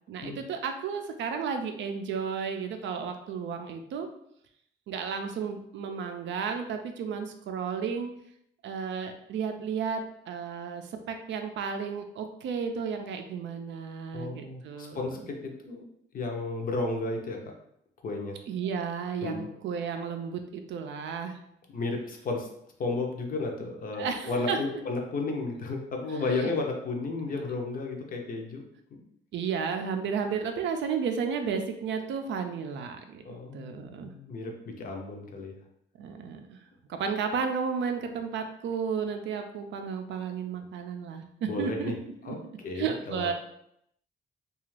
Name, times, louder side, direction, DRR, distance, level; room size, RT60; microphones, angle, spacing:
voice 1, 0.1-4.1 4.9-8.1 8.6-15.1 18.5-21.4 23.9-24.8 26.1-26.5 29.3-34.1 36.0-36.6 36.9-41.9 42.2-42.4 42.7-43.3, right 6 dB, 75° right, 6 dB, 0.4 m, -33 dB
voice 2, 14.1-15.9 16.1-17.5 18.0-18.4 19.2-19.6 21.7-22.5 22.8-28.6 28.9-29.0 33.2-35.6 41.5-42.0 42.2-43.3, left 3 dB, 45° left, 2 dB, 0.5 m, -33 dB
2.4 x 2.3 x 3.1 m, 0.74 s
cardioid pair, 125°, 20 cm